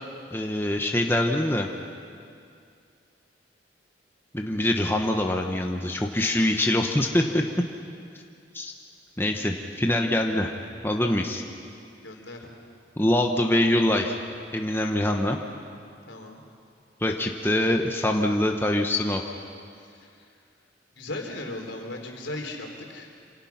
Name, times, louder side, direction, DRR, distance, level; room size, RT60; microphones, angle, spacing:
voice 1, 0.3-1.7 4.3-7.4 8.5-8.7 9.2-10.5 10.8-11.4 13.0-14.1 14.5-15.4 17.0-19.2, left 1 dB, 10° left, 2 dB, 1.1 m, -24 dB
voice 2, 12.0-12.5 16.1-16.4 19.7-20.3 20.9-23.1, left 2 dB, 80° left, 2 dB, 3.7 m, -37 dB
27.0 x 27.0 x 5.9 m, 2.4 s
head